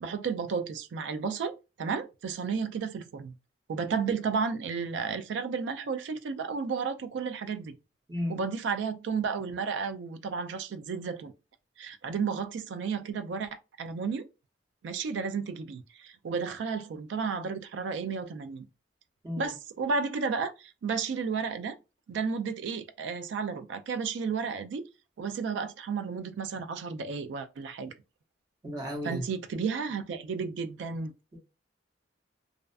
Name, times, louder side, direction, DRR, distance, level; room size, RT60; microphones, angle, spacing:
voice 1, 0.0-3.4 3.7-7.7 8.3-11.3 11.8-14.3 14.8-18.6 19.4-21.8 22.1-24.8 25.2-27.9 29.0-31.1, right 5 dB, 75° right, 0.3 m, -32 dB
voice 2, 8.1-8.4 19.2-19.5 28.6-29.2, left 1 dB, 20° right, 0.7 m, -34 dB
2.4 x 2.3 x 2.2 m
head